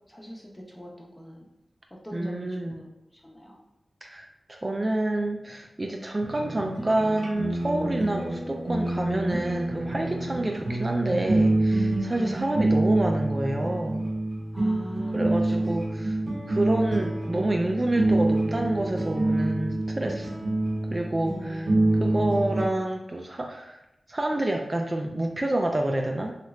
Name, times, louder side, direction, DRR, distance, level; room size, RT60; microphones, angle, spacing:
voice 1, 0.1-1.4 2.0-2.9 3.2-3.6 12.1-12.4 14.5-15.2 15.5-15.7 21.2-21.9, equal, 15° left, -2 dB, 0.7 m, -40 dB
voice 2, 2.1-2.8 4.0-14.1 15.1-16.2 16.5-20.3 20.9-23.8 24.1-26.3, right 1 dB, 30° right, 2 dB, 0.3 m, -28 dB
sound 1, 6.2-22.7, right 2 dB, 85° right, 0.7 m, -27 dB
2.9 x 2.4 x 3.1 m, 0.87 s
wide cardioid pair, 60°, 0 cm